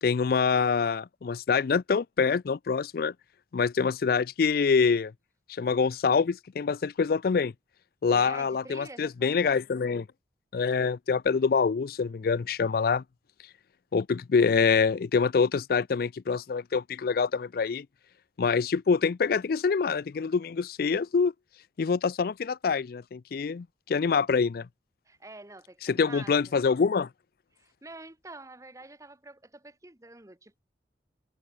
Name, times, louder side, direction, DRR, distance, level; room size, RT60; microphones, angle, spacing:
voice 1, 0.0-3.1 3.5-5.1 5.5-7.5 8.0-10.1 10.5-13.0 13.9-17.9 18.4-21.3 21.8-24.7 25.8-27.1, left 5 dB, 55° left, 0.4 m, -25 dB
voice 2, 8.1-9.5 25.1-26.5 27.5-30.6, right 2 dB, 20° right, 1.2 m, -47 dB
head